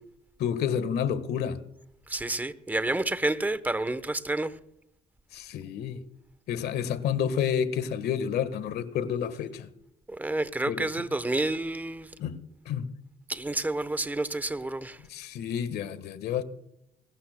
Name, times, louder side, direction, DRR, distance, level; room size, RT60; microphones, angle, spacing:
voice 1, 0.4-1.6 5.3-6.0 6.5-9.7 10.7-10.9 12.2-12.9 15.1-16.4, left 8 dB, 70° left, 1.5 m, -30 dB
voice 2, 2.1-4.5 10.1-12.1 13.3-15.0, right 2 dB, 10° right, 0.9 m, -29 dB
23.0 x 18.5 x 2.2 m
cardioid pair, 110°, 17 cm